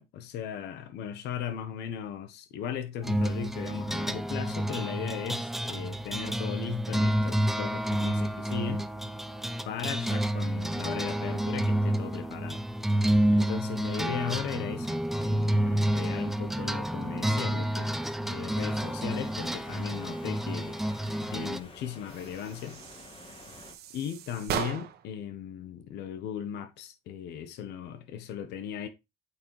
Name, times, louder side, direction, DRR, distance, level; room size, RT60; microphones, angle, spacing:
voice 1, 0.0-8.9 9.6-12.6 13.3-20.8 21.2-22.8 23.9-28.9, left 9 dB, 80° left, 1.1 m, -37 dB
sound 1, 3.0-21.6, right 1 dB, ahead, 0.6 m, -29 dB
sound 2, 18.5-23.7, left 3 dB, 30° left, 2.3 m, -50 dB
sound 3, 22.0-25.2, right 9 dB, 70° right, 1.3 m, -38 dB
8.4 x 4.9 x 3.2 m
cardioid pair, 110°, 17 cm